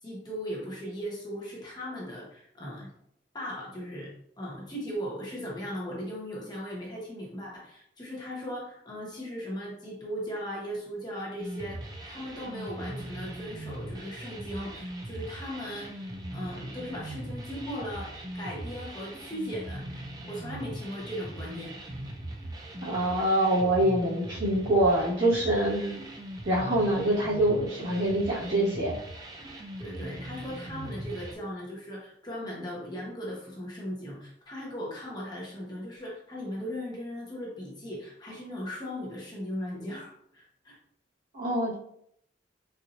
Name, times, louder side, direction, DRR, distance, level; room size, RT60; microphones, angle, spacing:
voice 1, 0.0-2.9 3.3-21.8 29.5-40.8, equal, 20° left, -5 dB, 0.9 m, -38 dB
sound 1, 11.4-31.3, right 1 dB, 20° right, 0.3 m, -40 dB
voice 2, 22.8-26.0 26.4-29.0 41.3-41.7, right 1 dB, 70° right, -8 dB, 1.4 m, -25 dB
4.2 x 2.6 x 2.5 m, 0.72 s
head